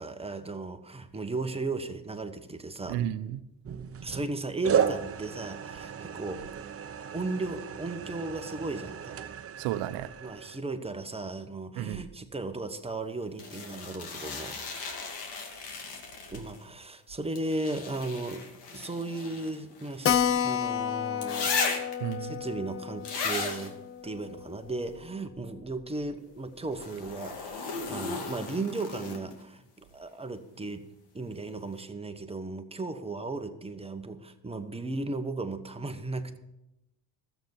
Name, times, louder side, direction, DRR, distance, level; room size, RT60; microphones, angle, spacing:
voice 1, 0.0-3.0 4.0-6.7 7.1-9.2 10.2-14.6 16.3-18.4 18.7-21.8 22.2-23.8 24.0-29.6 29.9-30.9 31.1-36.4, right 2 dB, 15° right, 7 dB, 1.1 m, -36 dB
voice 2, 2.9-3.4 9.6-10.1 11.8-12.1 22.0-22.4, right 12 dB, 90° right, 12 dB, 0.8 m, -32 dB
sound 1, 3.6-4.3 4.6-10.6, right 8 dB, 30° right, 0.8 m, -33 dB
sound 2, 13.4-16.6 17.3-20.5 21.2-22.1 23.0-23.7 26.7-29.4 31.3-31.4, left 4 dB, 65° left, 2.5 m, -36 dB
Keyboard (musical), 20.0-25.1 25.4-25.5 25.8-25.9 26.1-26.2 26.8-27.1, left 9 dB, 30° left, 0.5 m, -31 dB
13.0 x 8.1 x 7.2 m, 0.89 s
cardioid pair, 105°, 43 cm